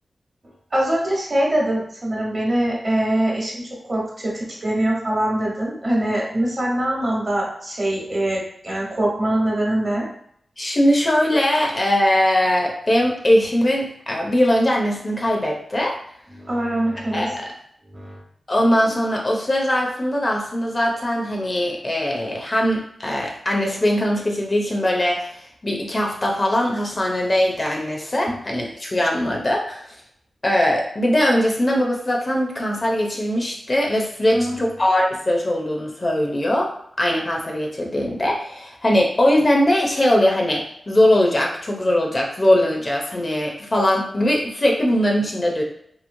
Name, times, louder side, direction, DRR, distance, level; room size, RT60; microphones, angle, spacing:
voice 1, 0.7-10.1 16.3-17.4 17.9-18.2 28.3-28.4 34.3-34.6, right 1 dB, 45° right, -3 dB, 1.1 m, -23 dB
voice 2, 10.6-15.9 17.1-17.5 18.5-29.9 30.4-36.7 37.0-45.6, left 1 dB, 35° left, -1 dB, 0.6 m, -20 dB
3.0 x 2.7 x 2.6 m, 0.66 s
wide cardioid pair, 95°, 0 cm